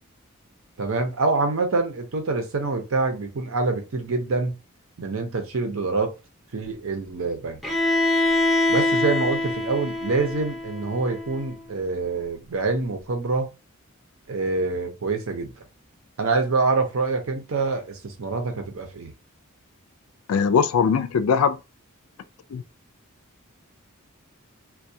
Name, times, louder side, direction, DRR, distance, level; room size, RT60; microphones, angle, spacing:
voice 1, 0.8-4.6 5.0-6.1 6.5-7.6 8.7-13.5 14.3-15.5 16.2-19.1, right 3 dB, 70° right, 0.6 m, -26 dB
Bowed string instrument, 7.6-11.5, left 2 dB, ahead, 0.5 m, -24 dB
voice 2, 20.3-21.6 22.5-22.6, left 6 dB, 80° left, 0.3 m, -20 dB
2.2 x 2.2 x 2.7 m
head